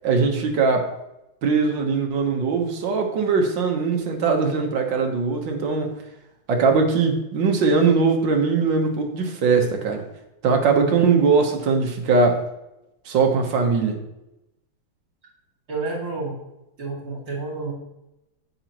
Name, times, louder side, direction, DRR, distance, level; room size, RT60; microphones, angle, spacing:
voice 1, 0.0-0.9 1.4-6.0 6.5-10.0 10.4-12.4 13.1-14.0, right 4 dB, 65° right, 4 dB, 1.8 m, -20 dB
voice 2, 10.6-11.0 15.7-16.4 16.8-17.7, right 3 dB, 45° right, -5 dB, 2.8 m, -30 dB
9.4 x 8.2 x 3.0 m, 0.91 s
omnidirectional pair, 2.2 m